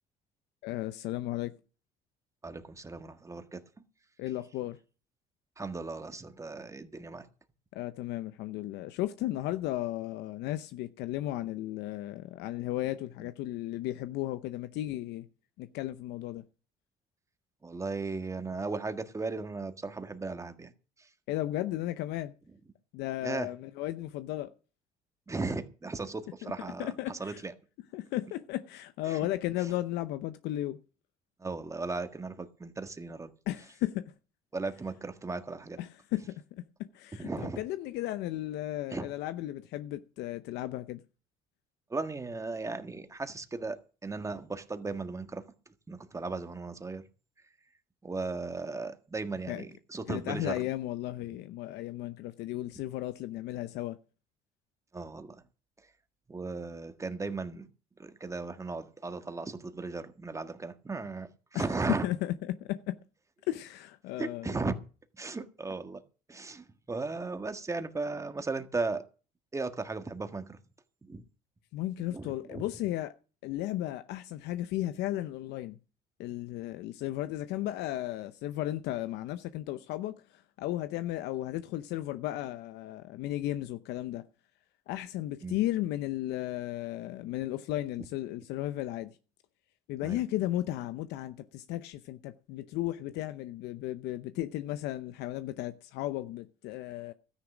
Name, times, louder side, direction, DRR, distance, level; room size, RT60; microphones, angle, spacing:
voice 1, 0.6-1.5 4.2-4.8 7.7-15.3 15.6-16.4 21.3-22.3 22.9-24.5 26.4-26.5 26.8-27.4 27.9-30.8 33.5-34.0 35.8-36.4 36.9-41.0 49.5-49.6 50.1-54.0 61.5-61.7 62.0-63.0 63.5-64.5 71.7-73.1 73.4-75.8 76.2-84.2 84.9-89.1 89.9-97.1, left 14 dB, 90° left, 0.7 m, -35 dB
voice 2, 2.4-3.6 5.6-7.3 17.6-20.7 21.0-21.1 23.2-23.5 25.3-27.5 29.1-29.3 29.6-29.7 31.4-33.3 34.5-35.8 37.1-37.6 38.9-39.1 41.9-45.4 45.9-47.0 48.0-50.7 54.9-55.4 56.3-57.7 58.0-62.1 64.2-64.7 65.2-66.0 66.3-69.0 69.5-70.6 71.0-71.2 72.1-72.6 85.4-85.6 90.0-90.2, right 3 dB, 20° right, 1.6 m, -36 dB
13.0 x 10.0 x 6.2 m
cardioid pair, 110°, 17 cm